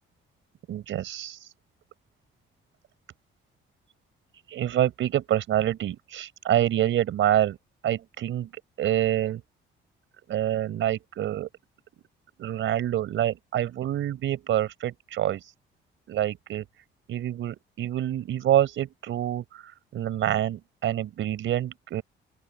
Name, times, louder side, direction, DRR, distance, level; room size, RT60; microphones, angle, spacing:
voice 1, 0.7-1.4 4.5-7.6 7.8-8.5 8.8-9.4 10.3-11.5 12.4-15.5 16.1-16.7 17.1-19.6 19.9-22.0, right 12 dB, 75° right, 4.9 m, -26 dB
open air
cardioid pair, 90°, 20 cm